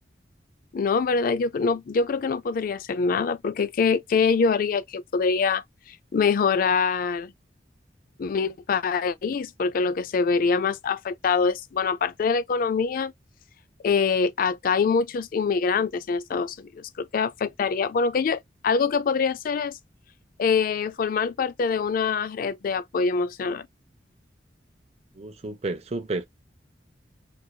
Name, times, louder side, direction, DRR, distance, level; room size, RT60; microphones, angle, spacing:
voice 1, 0.7-5.6 6.1-7.3 8.2-13.1 13.8-19.7 20.4-23.7, left 5 dB, 50° left, 0.3 m, -24 dB
voice 2, 25.2-26.3, right 2 dB, 35° right, 0.6 m, -31 dB
4.4 x 2.4 x 2.2 m
head